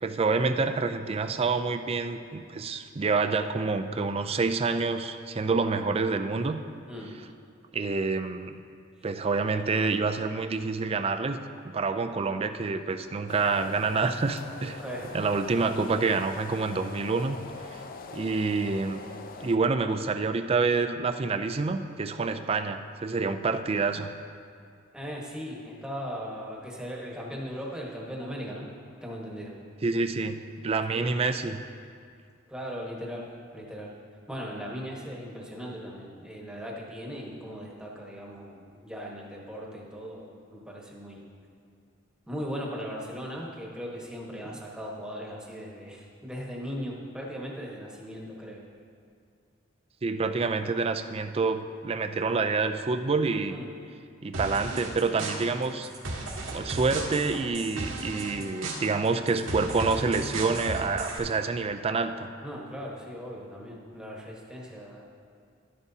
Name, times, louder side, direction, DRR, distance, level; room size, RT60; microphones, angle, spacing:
voice 1, 0.0-6.6 7.7-8.6 9.0-11.4 11.6-14.8 15.1-17.4 18.1-19.0 19.4-24.1 29.8-31.6 50.0-53.6 54.2-55.9 56.5-62.3, right 4 dB, 30° right, 9 dB, 0.4 m, -27 dB
voice 2, 6.9-7.2 14.8-15.1 24.9-28.7 29.0-29.6 30.9-31.2 32.5-33.9 34.3-41.2 42.3-48.7 53.5-53.7 62.4-65.1, equal, 5° right, -3 dB, 1.2 m, -38 dB
sound 1, 13.3-19.6, left 4 dB, 45° left, 0.5 m, -43 dB
sound 2, 54.3-61.2, right 2 dB, 90° right, 1.6 m, -36 dB
12.0 x 11.0 x 2.8 m, 2.3 s
head